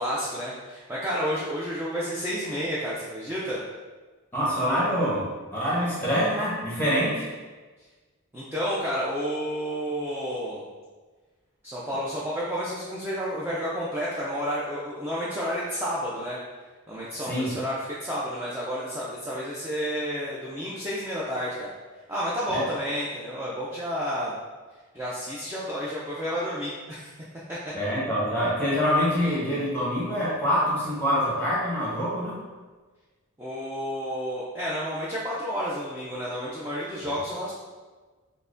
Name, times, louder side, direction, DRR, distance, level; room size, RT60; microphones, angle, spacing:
voice 1, 0.0-3.6 8.3-10.6 11.6-16.4 16.9-21.7 22.1-24.4 24.9-27.1 27.5-27.7 33.4-37.5, equal, 10° right, -8 dB, 0.4 m, -30 dB
voice 2, 4.3-7.3 17.3-17.5 22.5-22.6 27.7-32.4, equal, 10° left, -7 dB, 0.9 m, -25 dB
5.5 x 2.1 x 2.5 m, 1.3 s
head